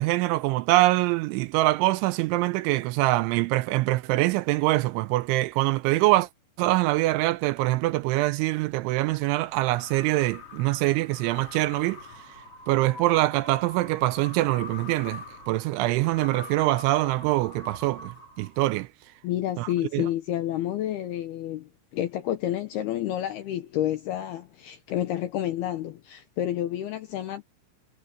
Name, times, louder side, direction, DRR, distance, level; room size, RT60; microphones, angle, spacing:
voice 1, 0.0-6.3 6.6-12.0 12.7-18.9 19.6-20.1, right 18 dB, 80° right, 2.8 m, -24 dB
sound 1, 9.1-18.8, left 3 dB, 35° left, 3.4 m, -44 dB
voice 2, 19.2-27.4, left 12 dB, 75° left, 2.4 m, -29 dB
omnidirectional pair, 5.7 m